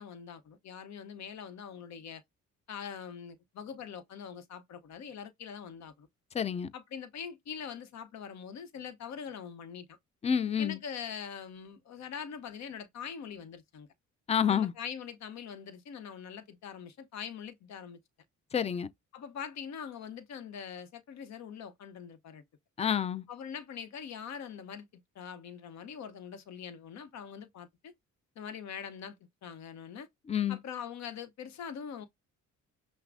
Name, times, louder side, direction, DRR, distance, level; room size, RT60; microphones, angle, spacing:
voice 1, 0.0-2.2 2.7-6.1 6.7-10.0 10.6-13.9 14.5-18.0 19.1-22.4 23.3-24.9 25.1-27.9 28.4-29.2 29.4-30.1 30.5-32.1, left 7 dB, 65° left, 0.8 m, -43 dB
voice 2, 6.3-6.7 10.2-10.8 14.3-14.7 18.5-18.9 22.8-23.2 30.3-30.6, left 8 dB, 20° left, 0.3 m, -28 dB
5.8 x 2.1 x 2.5 m
cardioid pair, 90°, 30 cm